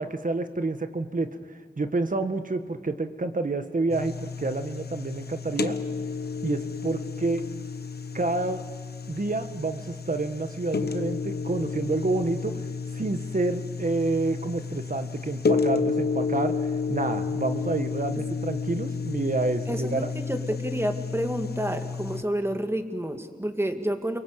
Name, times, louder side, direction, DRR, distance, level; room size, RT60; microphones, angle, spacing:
voice 1, 0.0-5.8 6.4-7.4 8.1-8.6 9.1-12.7 12.9-20.1, right 3 dB, 55° right, 8 dB, 1.7 m, -29 dB
sound 1, 3.9-22.2, left 5 dB, 85° left, 1.1 m, -31 dB
voice 2, 19.7-24.2, equal, 15° right, 6 dB, 2.2 m, -29 dB
29.0 x 23.0 x 8.2 m, 1.5 s
wide cardioid pair, 65°, 16 cm